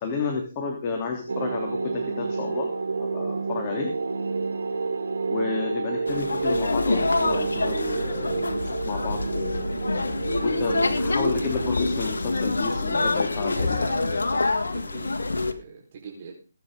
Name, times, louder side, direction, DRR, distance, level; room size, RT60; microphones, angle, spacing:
voice 1, 0.0-2.7 3.1-3.9 5.3-9.7 10.4-13.8, left 4 dB, 25° left, 1 dB, 3.3 m, -31 dB
sound 1, 1.3-13.1, right 4 dB, 80° right, 7.8 m, -30 dB
sound 2, 6.1-15.5, left 3 dB, 80° left, 1.9 m, -26 dB
voice 2, 12.8-16.3, right 5 dB, 40° right, -2 dB, 4.6 m, -41 dB
22.0 x 9.3 x 3.9 m, 0.36 s
figure-of-eight pair, 150°, 0 cm